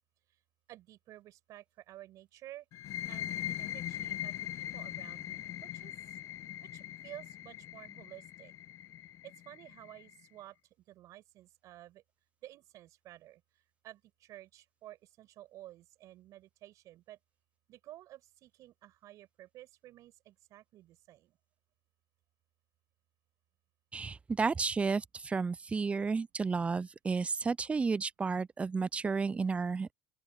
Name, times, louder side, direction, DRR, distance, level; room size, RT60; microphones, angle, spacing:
voice 1, 0.7-5.9 6.6-8.5 9.2-10.6 10.9-12.0 12.4-13.4 13.8-17.2 17.7-21.4, right 14 dB, 65° right, 7.8 m, -53 dB
sound 1, 2.7-10.2, left 12 dB, 60° left, 1.2 m, -41 dB
voice 2, 23.9-29.9, right 4 dB, 20° right, 0.5 m, -32 dB
open air
supercardioid pair, 95°, 6 cm